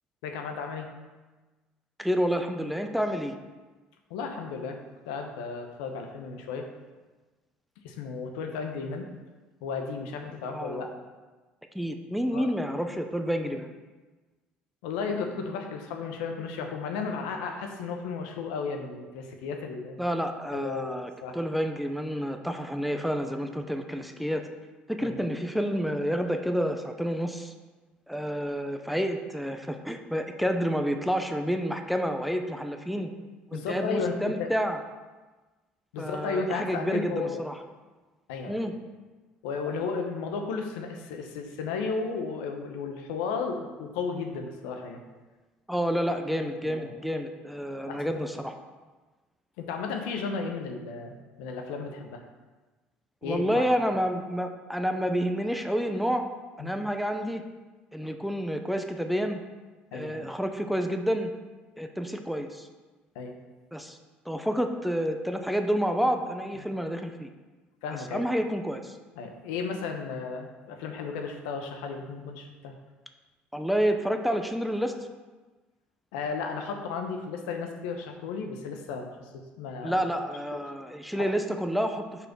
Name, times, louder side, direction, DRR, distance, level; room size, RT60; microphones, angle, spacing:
voice 1, 0.2-0.9 4.1-4.8 5.1-6.7 7.8-9.1 9.6-10.9 12.3-12.5 14.8-20.0 20.5-21.3 25.0-25.2 33.5-34.5 35.9-37.4 38.3-38.6 39.4-45.0 46.6-46.9 47.7-48.4 49.6-51.1 51.4-52.2 53.2-53.7 56.6-56.7 59.9-60.3 63.1-63.3 67.8-68.3 69.2-72.7 76.1-80.0 80.5-80.6 81.2-81.3, left 5 dB, 85° left, 4 dB, 0.8 m, -34 dB
voice 2, 2.0-3.4 10.5-10.9 11.7-13.7 20.0-24.4 24.9-27.5 28.1-33.1 33.5-34.8 36.0-37.6 38.5-38.7 39.7-39.8 45.7-48.5 53.2-56.3 56.6-57.4 57.9-59.4 59.9-61.3 61.8-62.7 63.7-64.0 64.3-67.3 68.1-68.9 73.5-75.0 79.8-82.0, equal, ahead, 6 dB, 0.7 m, -29 dB
5.5 x 4.1 x 6.1 m, 1.3 s
supercardioid pair, 70°, 4 cm